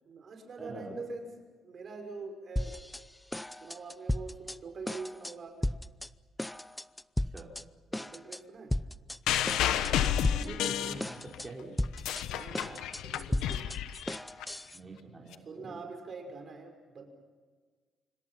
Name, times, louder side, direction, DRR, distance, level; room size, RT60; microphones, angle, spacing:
voice 1, 0.0-1.3 1.6-2.8 3.6-5.7 7.9-8.7 12.3-13.7 15.5-17.1, right 4 dB, 50° right, 5 dB, 5.8 m, -44 dB
voice 2, 0.6-1.0 7.3-7.5 10.4-11.8 13.8-13.9 14.7-15.8, right 2 dB, 25° right, -2 dB, 4.2 m, -45 dB
sound 1, 2.6-3.0 3.3-4.6 4.9-5.3 5.6-6.1 6.4-7.6 7.9-8.4 8.7-9.2 9.5-10.7 11.0-11.5 11.8-14.8, left 1 dB, 10° left, 0.6 m, -35 dB
sound 2, 9.3-11.5 11.8-14.4 15.3-15.4, left 11 dB, 90° left, 1.2 m, -31 dB
26.5 x 25.0 x 5.8 m, 1.5 s
cardioid pair, 90°, 0 cm